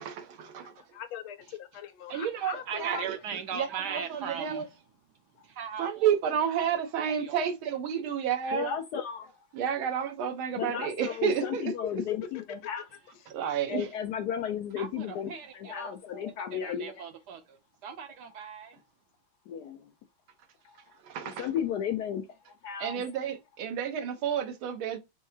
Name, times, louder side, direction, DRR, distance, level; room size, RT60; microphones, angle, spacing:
voice 1, 0.0-0.7 2.1-3.2 3.5-4.6 5.8-8.7 9.5-12.0 13.3-13.9 21.0-21.5 22.8-25.0, right 8 dB, 90° right, 1.7 m, -31 dB
voice 2, 0.9-3.0 11.9-12.0, left 10 dB, 90° left, 1.6 m, -41 dB
voice 3, 2.7-4.7 5.4-6.1 6.5-6.8 7.0-7.4 14.8-16.0 16.5-18.8, right 7 dB, 65° right, 1.1 m, -39 dB
voice 4, 8.5-9.3 10.6-12.8 13.7-15.3 15.5-16.9 19.5-19.8 21.2-22.2 22.6-23.0, left 8 dB, 75° left, 0.9 m, -33 dB
5.5 x 2.8 x 2.7 m
omnidirectional pair, 2.2 m